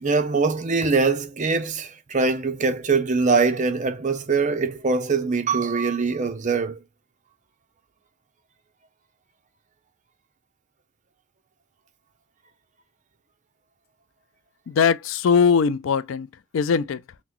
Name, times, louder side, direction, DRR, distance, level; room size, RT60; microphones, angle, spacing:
voice 1, 0.0-6.8, right 4 dB, 35° right, 0.6 m, -23 dB
voice 2, 14.7-16.3 16.5-17.0, left 6 dB, 60° left, 0.3 m, -20 dB
5.8 x 2.1 x 3.0 m
head